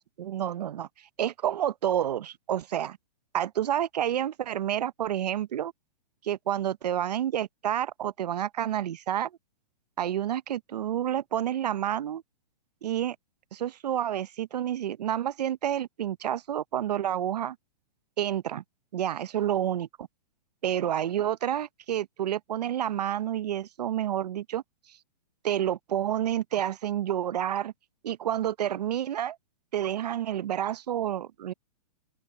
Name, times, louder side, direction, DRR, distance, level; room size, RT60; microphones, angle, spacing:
voice 1, 0.2-0.9 1.2-3.0 3.3-5.7 6.2-9.3 10.0-12.2 12.8-13.2 13.5-17.6 18.2-18.6 18.9-20.1 20.6-24.6 25.4-27.7 28.0-29.4 29.7-31.5, right 11 dB, 75° right, 0.7 m, -29 dB
open air
hypercardioid pair, 175°, 21 cm